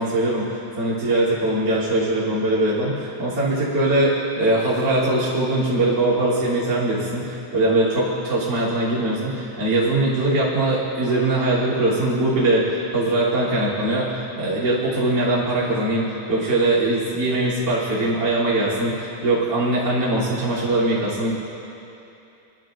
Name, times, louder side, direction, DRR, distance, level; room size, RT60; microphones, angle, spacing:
voice 1, 0.0-21.3, right 2 dB, 25° right, -9 dB, 3.1 m, -21 dB
24.5 x 12.0 x 2.6 m, 2.8 s
omnidirectional pair, 5.1 m